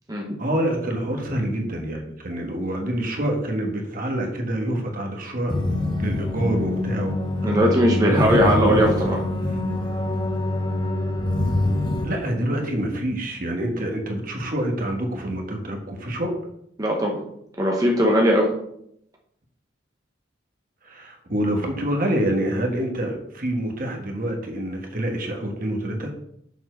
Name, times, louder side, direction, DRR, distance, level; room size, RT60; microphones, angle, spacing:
voice 1, 0.4-5.6 6.0-9.2 12.0-16.3 20.8-26.2, right 1 dB, 45° right, 2 dB, 1.5 m, -27 dB
sound 1, 5.5-12.1, left 1 dB, 25° left, 1.1 m, -25 dB
voice 2, 7.4-9.2 16.8-17.2 17.6-18.5, equal, 20° right, -1 dB, 1.0 m, -19 dB
7.1 x 4.4 x 6.3 m, 0.73 s
head